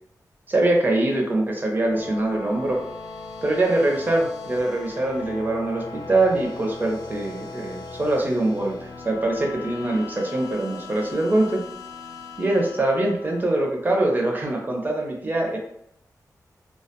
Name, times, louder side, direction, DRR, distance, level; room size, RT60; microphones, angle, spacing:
voice 1, 0.5-2.8 3.4-11.6 12.4-15.6, right 2 dB, 30° right, 0 dB, 0.5 m, -23 dB
sound 1, 1.6-13.9, left 4 dB, 80° left, 0.4 m, -39 dB
2.2 x 2.1 x 2.8 m, 0.73 s
wide cardioid pair, 155°, 7 cm